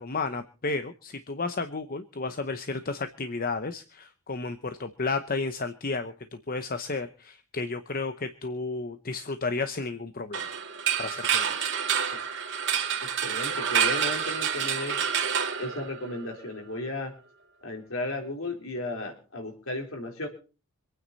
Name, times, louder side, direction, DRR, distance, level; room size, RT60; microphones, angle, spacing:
voice 1, 0.0-10.5 11.0-11.7, left 3 dB, 40° left, 9 dB, 0.9 m, -32 dB
sound 1, 10.3-16.3, right 8 dB, 55° right, 2.6 m, -28 dB
voice 2, 13.0-15.0 15.6-17.1 17.6-20.3, left 2 dB, 60° left, 3 dB, 4.0 m, -34 dB
25.5 x 9.5 x 4.1 m, 0.37 s
head